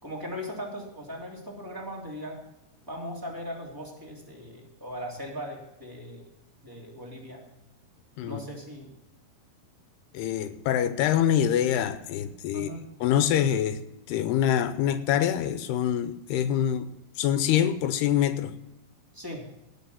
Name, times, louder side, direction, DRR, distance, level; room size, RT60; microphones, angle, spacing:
voice 1, 0.0-2.4 2.9-6.3 6.6-7.4 8.2-8.9 12.5-12.9 19.1-19.4, equal, 5° right, 2.2 m, -38 dB
voice 2, 10.1-12.7 13.0-13.8 14.1-16.9 17.2-18.5, left 10 dB, 80° left, 2.7 m, -25 dB
18.0 x 6.1 x 7.0 m
omnidirectional pair, 4.7 m